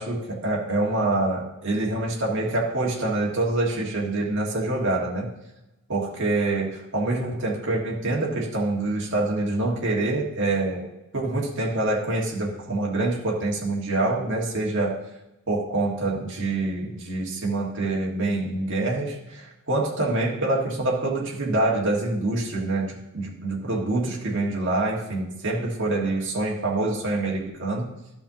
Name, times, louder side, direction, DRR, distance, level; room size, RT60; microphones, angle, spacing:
voice 1, 0.0-5.3 5.9-10.9 11.1-15.0 15.5-27.9, right 2 dB, 55° right, -3 dB, 1.6 m, -26 dB
13.0 x 5.6 x 2.8 m, 0.96 s
head